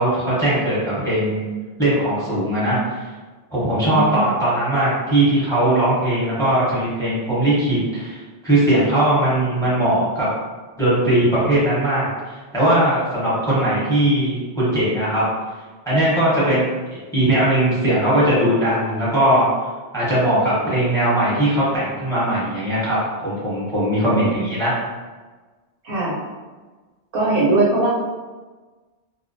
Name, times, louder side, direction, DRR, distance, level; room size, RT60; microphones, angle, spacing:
voice 1, 0.0-1.5 1.8-3.1 3.5-10.3 10.8-15.2 15.9-16.7 17.1-19.5 19.9-24.8, right 1 dB, 5° left, -9 dB, 0.8 m, -19 dB
voice 2, 3.9-4.4 16.3-16.6 24.1-24.5 25.8-26.2 27.1-27.9, right 2 dB, 65° right, -5 dB, 0.7 m, -21 dB
2.3 x 2.1 x 2.5 m, 1.3 s
omnidirectional pair, 1.1 m